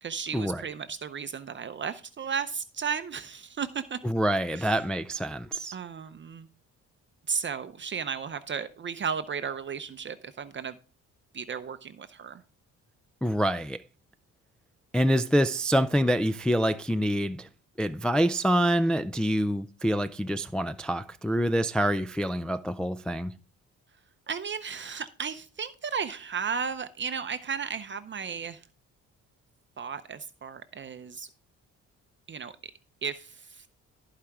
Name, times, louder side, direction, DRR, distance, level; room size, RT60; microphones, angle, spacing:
voice 1, 0.0-4.0 4.5-4.8 5.7-6.5 7.3-10.8 11.3-12.4 24.3-28.6 29.8-31.3 32.3-32.5 33.0-33.7, right 6 dB, 40° right, 0.6 m, -34 dB
voice 2, 4.0-5.7 13.2-13.8 14.9-17.5 17.8-23.3, equal, 5° left, 0.3 m, -26 dB
14.5 x 4.9 x 3.5 m
cardioid pair, 90°, 30 cm